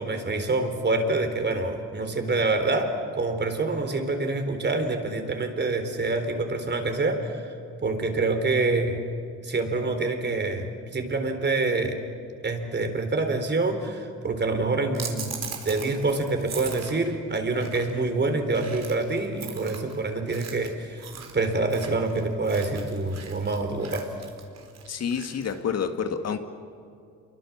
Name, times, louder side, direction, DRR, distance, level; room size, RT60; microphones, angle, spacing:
voice 1, 0.0-7.5 7.8-9.0 9.4-12.0 12.4-15.3 15.6-21.1 21.3-24.1, right 3 dB, 35° right, 6 dB, 4.0 m, -26 dB
sound 1, 14.9-25.6, right 6 dB, 60° right, 4.1 m, -40 dB
voice 2, 24.9-26.4, left 7 dB, 55° left, 7 dB, 2.0 m, -28 dB
28.0 x 23.5 x 7.4 m, 2.4 s
cardioid pair, 90°, 30 cm